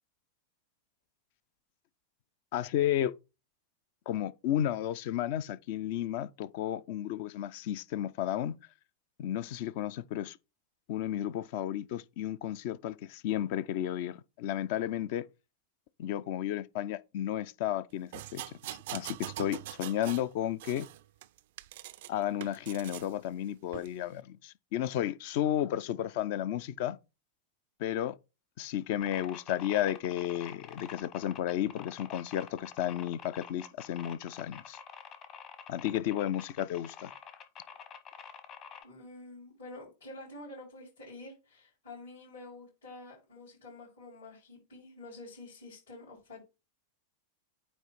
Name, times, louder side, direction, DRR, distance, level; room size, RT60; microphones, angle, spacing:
voice 1, 2.5-3.1 4.1-8.6 9.2-10.4 10.9-15.3 16.0-18.4 18.7-20.9 22.1-27.0 27.8-28.1 28.6-34.8 35.7-37.1, left 11 dB, 50° left, 0.4 m, -33 dB
sound 1, 18.1-20.3 20.6-22.1 22.4-23.1 23.7-23.9, right 15 dB, 55° right, 0.3 m, -43 dB
sound 2, 29.0-38.8, left 7 dB, 30° left, 1.1 m, -48 dB
voice 2, 38.8-46.4, left 2 dB, 65° left, 4.6 m, -48 dB
9.0 x 3.1 x 4.3 m
figure-of-eight pair, 90°, 0 cm